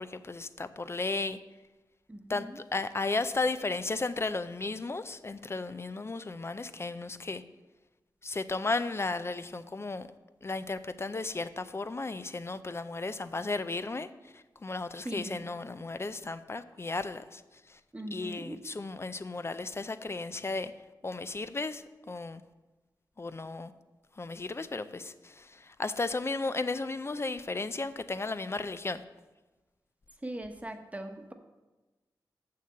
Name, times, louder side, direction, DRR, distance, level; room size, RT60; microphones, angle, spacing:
voice 1, 0.0-1.4 2.3-7.4 8.2-10.1 10.4-14.1 14.3-17.4 17.7-17.8 18.1-20.7 21.0-22.4 23.2-23.7 24.2-29.0, left 3 dB, 35° left, 12 dB, 0.4 m, -34 dB
voice 2, 2.1-2.6 15.0-15.4 17.9-18.6 30.2-31.3, right 1 dB, 20° right, 5 dB, 1.0 m, -40 dB
6.7 x 6.6 x 6.6 m, 1.1 s
cardioid pair, 65°, 8 cm